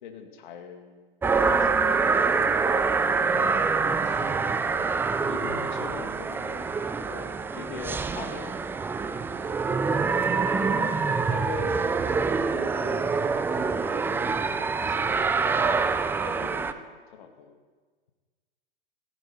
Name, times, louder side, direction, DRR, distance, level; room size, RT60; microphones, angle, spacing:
voice 1, 0.0-1.1 1.4-2.5 4.7-6.8 7.1-8.7 9.9-10.0 10.3-17.5, left 7 dB, 55° left, 5 dB, 2.2 m, -43 dB
sound 1, 1.2-16.7, right 4 dB, 5° right, 0.4 m, -25 dB
voice 2, 3.3-4.5 5.5-6.1, left 6 dB, 70° left, 2 dB, 1.6 m, -42 dB
16.5 x 15.5 x 4.4 m, 1.5 s
figure-of-eight pair, 100°, 29 cm